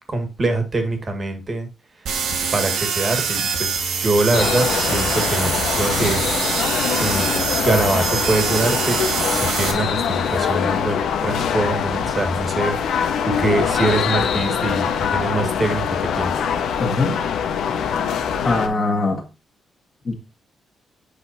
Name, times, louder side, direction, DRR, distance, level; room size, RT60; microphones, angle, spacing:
voice 1, 0.1-1.7 2.5-6.2 7.0-7.3 7.6-16.4, right 2 dB, 30° right, 6 dB, 1.8 m, -24 dB
sound 1, 2.1-9.7, right 6 dB, 80° right, 1.9 m, -24 dB
sound 2, 4.3-18.7, left 7 dB, 90° left, 1.2 m, -23 dB
voice 2, 16.8-17.2 18.4-19.3 20.1-20.2, left 3 dB, 30° left, -3 dB, 1.9 m, -21 dB
8.5 x 5.7 x 2.8 m, 0.28 s
cardioid pair, 150°, 0 cm